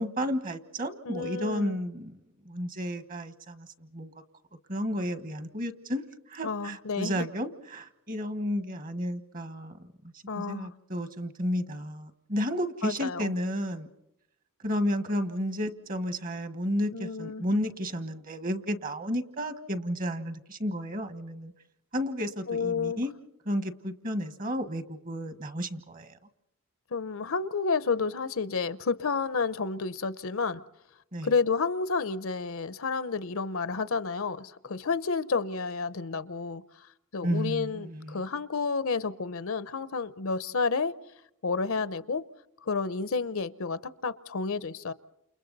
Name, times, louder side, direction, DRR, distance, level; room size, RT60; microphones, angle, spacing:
voice 1, 0.0-2.2 2.4-4.1 4.7-9.9 10.4-13.9 14.6-21.5 21.9-23.1 23.4-26.2 31.1-31.3 37.2-38.2, equal, 40° right, 1.5 m, -32 dB
voice 2, 1.1-1.8 6.4-7.3 10.3-10.7 12.8-13.3 16.9-17.4 22.5-23.0 26.9-30.6 31.2-36.6 37.1-40.9 41.4-42.2 42.6-44.9, left 4 dB, 65° left, 0.7 m, -30 dB
29.5 x 29.0 x 4.1 m
head